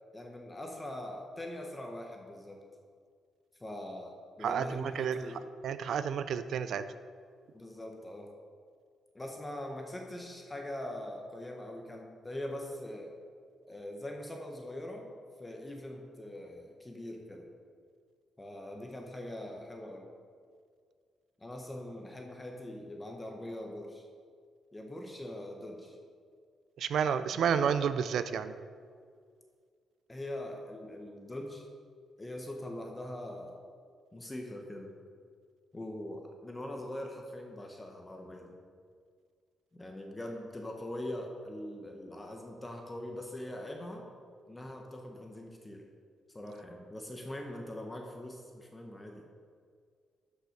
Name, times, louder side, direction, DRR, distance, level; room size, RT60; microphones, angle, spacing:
voice 1, 0.1-2.6 3.6-5.4 7.5-8.3 9.1-13.1 13.7-15.1 15.4-17.5 18.4-20.1 21.4-24.1 24.7-26.0 27.3-27.4 30.1-31.7 32.2-33.6 34.1-34.9 35.7-38.6 39.7-44.0 44.5-45.8 46.3-49.3, left 1 dB, 15° left, 2 dB, 0.9 m, -42 dB
voice 2, 4.4-5.2 5.6-6.8 26.8-28.6, right 7 dB, 60° right, 12 dB, 0.5 m, -30 dB
12.0 x 5.5 x 5.1 m, 2.1 s
cardioid pair, 160°, 0 cm